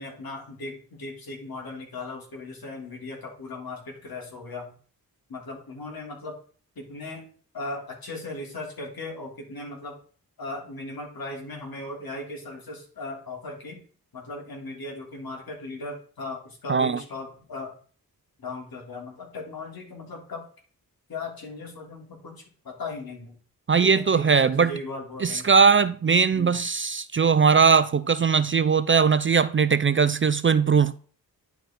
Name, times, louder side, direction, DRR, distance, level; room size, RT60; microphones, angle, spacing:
voice 1, 0.0-4.7 5.3-6.4 6.7-7.3 7.5-10.0 10.4-13.8 14.1-17.7 18.4-20.4 21.1-23.4 23.8-25.5 26.3-26.6, left 2 dB, 65° left, 3.2 m, -37 dB
voice 2, 16.7-17.0 23.7-24.7 25.2-30.9, right 5 dB, 35° right, 0.5 m, -20 dB
10.0 x 4.7 x 3.8 m
cardioid pair, 65°, 38 cm